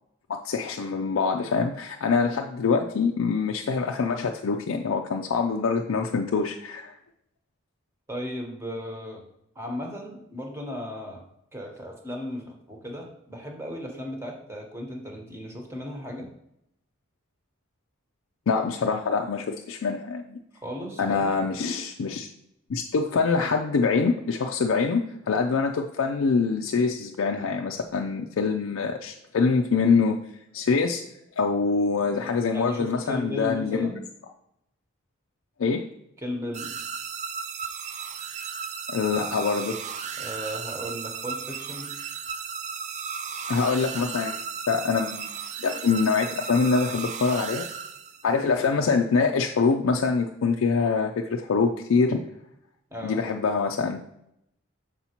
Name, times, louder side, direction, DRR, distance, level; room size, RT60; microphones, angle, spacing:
voice 1, 0.3-7.0 18.5-20.4 21.0-22.3 22.7-30.2 30.5-31.0 31.4-33.9 35.6-35.8 38.9-39.8 43.5-47.7 48.2-52.2 53.0-54.0, left 4 dB, 80° left, 2 dB, 0.4 m, -25 dB
voice 2, 8.1-9.2 9.5-11.2 11.5-16.3 20.5-21.3 32.5-34.0 36.2-36.7 40.2-41.9 52.9-53.2, left 1 dB, 15° right, 1 dB, 1.0 m, -36 dB
sound 1, 36.5-48.4, right 6 dB, 35° right, 0.3 m, -35 dB
6.7 x 5.6 x 2.9 m, 0.78 s
head